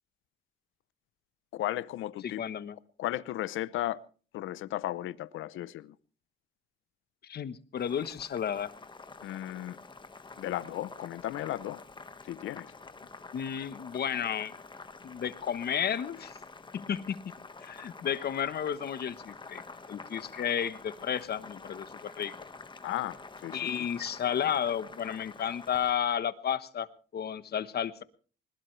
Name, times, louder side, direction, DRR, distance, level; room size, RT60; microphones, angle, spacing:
voice 1, 1.5-2.4 3.0-4.0 4.3-6.0 9.2-9.8 10.4-11.8 12.2-12.7 22.8-23.9, left 14 dB, 80° left, 0.7 m, -35 dB
voice 2, 2.2-2.8 7.2-8.7 13.3-14.5 15.0-16.3 16.7-17.3 17.6-19.6 19.9-22.3 23.5-26.9 27.1-28.0, left 8 dB, 55° left, 1.1 m, -32 dB
Boiling, 7.7-26.0, left 3 dB, 25° left, 1.5 m, -48 dB
21.0 x 20.0 x 3.3 m
cardioid pair, 90°, 20 cm